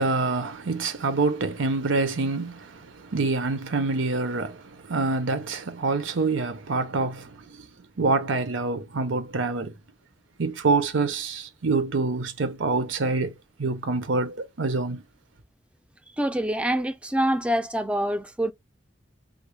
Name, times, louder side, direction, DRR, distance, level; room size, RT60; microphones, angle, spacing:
voice 1, 0.0-7.7 8.0-9.7 10.4-13.3 13.6-15.0, right 3 dB, 85° right, 0.7 m, -26 dB
voice 2, 16.2-18.5, right 1 dB, 5° right, 0.3 m, -25 dB
3.6 x 2.1 x 3.0 m
head